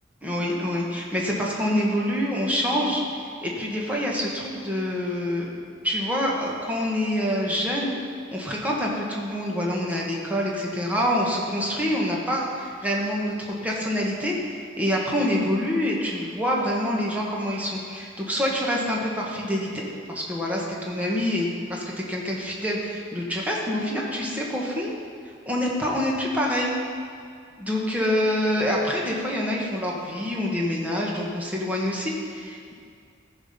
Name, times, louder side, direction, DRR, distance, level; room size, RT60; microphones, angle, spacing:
voice 1, 0.2-5.5 5.8-7.9 8.3-25.0 25.4-26.7 27.6-32.7, equal, 10° right, -3 dB, 1.5 m, -26 dB
14.0 x 5.1 x 5.6 m, 2.2 s
head